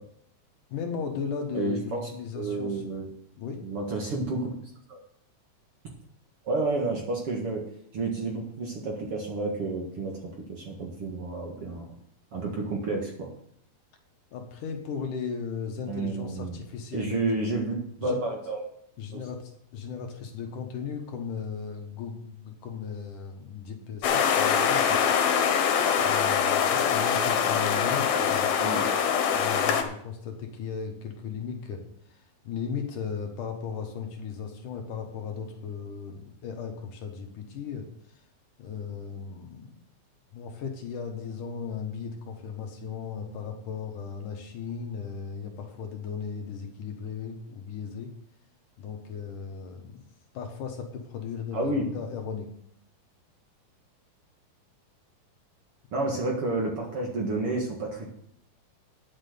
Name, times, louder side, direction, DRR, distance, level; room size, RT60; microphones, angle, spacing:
voice 1, 0.7-2.8 3.4-3.6 14.3-17.3 18.0-18.2 19.0-25.0 26.0-28.8 29.3-37.9 38.2-38.3 38.6-39.7 40.3-48.1 48.8-50.0 50.3-52.5, left 6 dB, 65° left, 3 dB, 2.7 m, -36 dB
voice 2, 1.5-2.1 2.4-3.1 3.6-4.5 4.9-5.0 6.4-7.6 7.9-10.2 10.5-11.9 12.3-13.3 15.9-16.6 16.9-18.6 19.1-19.2 28.6-28.8 51.5-51.9 55.9-58.1, right 2 dB, 50° right, -1 dB, 2.1 m, -30 dB
sound 1, 24.0-29.8, left 7 dB, 80° left, 3.1 m, -24 dB
10.5 x 7.5 x 6.7 m, 0.68 s
omnidirectional pair, 4.3 m